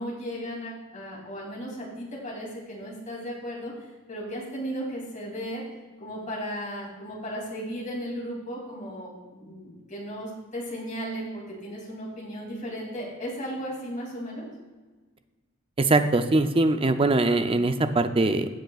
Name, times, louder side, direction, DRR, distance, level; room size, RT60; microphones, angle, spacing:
voice 1, 0.0-3.7 4.1-5.6 6.0-14.5, equal, 35° left, -3 dB, 2.8 m, -35 dB
voice 2, 15.8-18.5, right 2 dB, 25° right, 9 dB, 0.5 m, -22 dB
15.5 x 7.6 x 2.4 m, 1.3 s
head